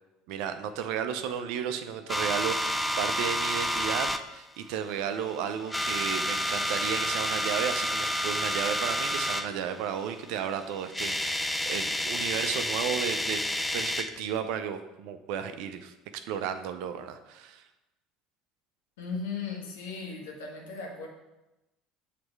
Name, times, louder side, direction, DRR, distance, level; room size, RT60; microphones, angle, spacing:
voice 1, 0.3-13.4 13.7-15.9 16.3-17.6, right 8 dB, 65° right, 9 dB, 0.5 m, -33 dB
sound 1, 2.1-4.2 4.9-5.3 5.6-9.5 10.6-10.7 10.8-14.2, equal, 5° left, 0.4 m, -30 dB
voice 2, 19.0-21.1, left 5 dB, 75° left, 0 dB, 1.4 m, -37 dB
7.8 x 3.3 x 4.6 m, 0.99 s
hypercardioid pair, 70°, 0 cm